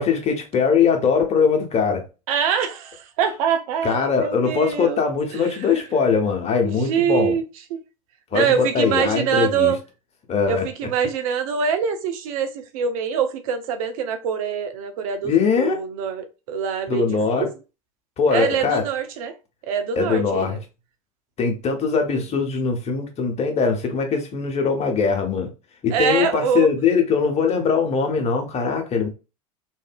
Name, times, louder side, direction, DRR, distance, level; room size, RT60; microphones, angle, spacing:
voice 1, 0.0-2.0 3.8-7.4 8.3-9.7 10.3-10.6 15.2-15.8 16.9-17.5 18.2-18.8 19.9-20.6 21.4-25.5 25.8-29.1, left 5 dB, 35° left, 0.9 m, -21 dB
voice 2, 2.3-5.8 6.6-7.4 7.7-7.8 8.3-9.8 10.5-17.5 18.3-19.3 19.7-20.6 21.8-22.2 25.9-26.7, right 7 dB, 65° right, 0.6 m, -24 dB
2.6 x 2.6 x 2.2 m
hypercardioid pair, 75°, 19 cm